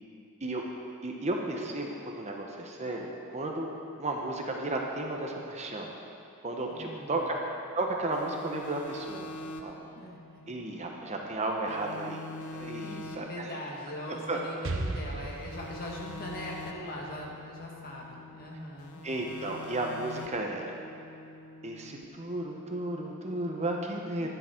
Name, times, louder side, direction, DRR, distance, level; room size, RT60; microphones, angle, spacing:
voice 1, 1.0-3.7 4.0-5.9 6.4-9.8 10.5-12.2 12.5-13.5 14.3-14.4 19.0-20.8 21.6-24.3, right 2 dB, 30° right, 1 dB, 1.0 m, -34 dB
voice 2, 6.7-7.3 9.9-10.4 12.8-19.0 24.2-24.3, equal, 45° left, -2 dB, 1.9 m, -41 dB
sound 1, 8.1-11.4 11.7-14.9 15.3-18.5 18.8-22.0, left 2 dB, 80° left, 0.8 m, -45 dB
Explosion, 14.6-18.4, right 2 dB, 65° right, 0.8 m, -38 dB
11.5 x 10.5 x 4.5 m, 2.6 s
head